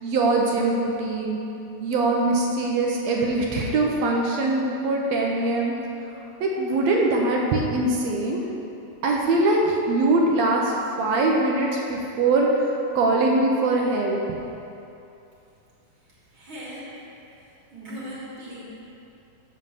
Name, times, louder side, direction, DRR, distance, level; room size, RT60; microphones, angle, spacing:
voice 1, 0.0-1.4 1.8-5.7 6.4-8.4 9.0-14.4, right 2 dB, 75° right, -1 dB, 1.6 m, -22 dB
voice 2, 16.3-16.9 17.7-18.6, equal, 40° right, -7 dB, 2.5 m, -38 dB
7.3 x 5.5 x 6.6 m, 2.8 s
omnidirectional pair, 3.9 m